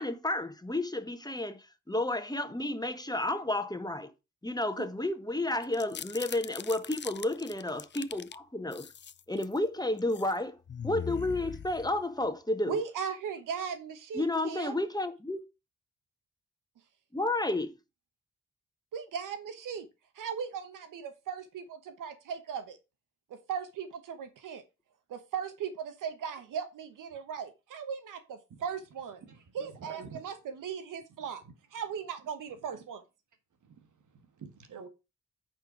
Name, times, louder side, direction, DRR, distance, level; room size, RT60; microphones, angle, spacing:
voice 1, 0.0-4.1 4.4-8.9 9.3-10.6 10.8-12.8 14.1-15.4 17.1-17.7, left 2 dB, 15° left, 1.3 m, -31 dB
sound 1, 5.6-8.4 8.7-9.6 10.0-10.3 10.7-12.3, left 8 dB, 35° left, 0.4 m, -42 dB
voice 2, 12.6-14.8 18.9-19.9 20.1-22.8 23.3-24.6 25.1-29.2 29.5-31.4 31.7-33.0, right 7 dB, 90° right, 1.1 m, -38 dB
voice 3, 29.2-30.3 31.4-31.5 32.5-32.8 33.6-34.9, right 5 dB, 75° right, 1.5 m, -49 dB
8.9 x 4.5 x 4.9 m
supercardioid pair, 45°, 31 cm